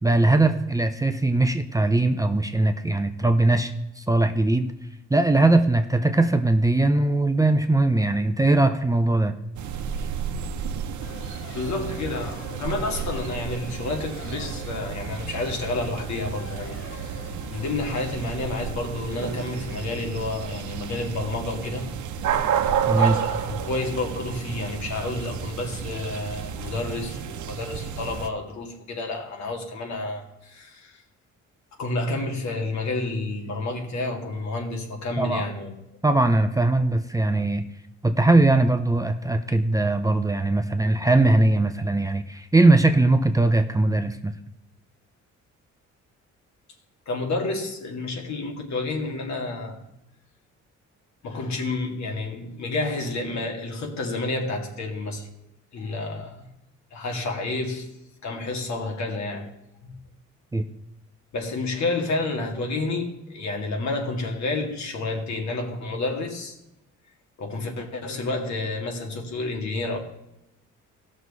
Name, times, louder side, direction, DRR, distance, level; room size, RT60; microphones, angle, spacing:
voice 1, 0.0-4.7 5.1-9.3 22.9-23.2 35.2-35.4 36.0-37.6 38.0-44.3 60.5-60.6, right 2 dB, 10° right, 0.6 m, -20 dB
sound 1, 9.6-28.3, right 8 dB, 75° right, 0.9 m, -31 dB
Race car auto racing, 11.0-17.7, left 4 dB, 45° left, 1.2 m, -45 dB
voice 2, 11.5-21.9 23.0-31.0 31.8-35.7 47.1-49.8 51.2-55.3 55.7-56.5 56.9-57.9 58.2-59.5 59.8-60.0 61.3-66.6 67.4-70.0, left 2 dB, 65° left, 2.1 m, -30 dB
16.0 x 6.3 x 4.1 m
cardioid pair, 90°, 30 cm